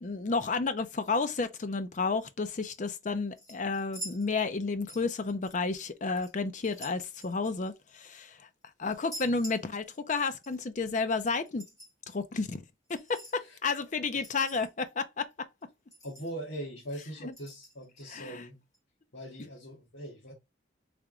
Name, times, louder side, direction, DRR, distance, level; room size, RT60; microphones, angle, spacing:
voice 1, 0.0-8.4 8.8-11.6 12.1-12.6 12.9-15.3 18.1-18.4, left 4 dB, 40° left, 0.5 m, -31 dB
sound 1, 2.7-2.9 3.4-4.6 4.9-5.9 6.2-8.2 8.9-10.2 10.4-10.6 11.4-11.9 12.9-13.4 14.2-14.9 15.3-15.4 15.6-15.7 15.9-16.5 17.3-18.0 18.7-18.8, right 1 dB, 20° left, 1.9 m, -47 dB
voice 2, 16.0-18.6 19.1-20.3, right 1 dB, 70° left, 1.4 m, -41 dB
3.4 x 2.9 x 3.6 m
head